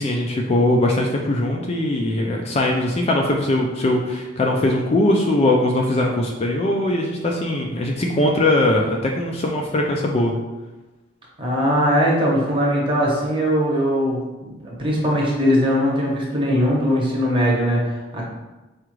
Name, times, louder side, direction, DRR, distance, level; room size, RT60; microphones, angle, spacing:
voice 1, 0.0-10.3, left 1 dB, 30° left, 0 dB, 0.4 m, -20 dB
voice 2, 11.4-18.2, equal, 25° right, -4 dB, 0.9 m, -20 dB
4.7 x 2.4 x 3.0 m, 1.1 s
head